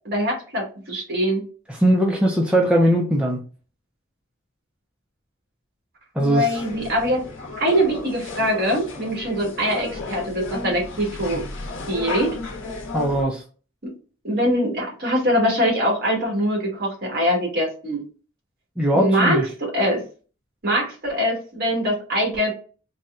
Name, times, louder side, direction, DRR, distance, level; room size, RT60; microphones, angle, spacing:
voice 1, 0.0-1.4 6.1-7.2 7.6-11.4 11.9-12.4 13.8-13.9 14.2-18.0 18.9-20.0 20.6-22.5, equal, 50° right, -1 dB, 1.6 m, -23 dB
voice 2, 1.7-3.4 6.2-6.6 12.9-13.4 18.8-19.4, right 1 dB, 5° right, -2 dB, 0.4 m, -20 dB
sound 1, 6.5-13.2, left 3 dB, 70° left, 0.9 m, -34 dB
4.0 x 2.2 x 2.4 m, 0.37 s
head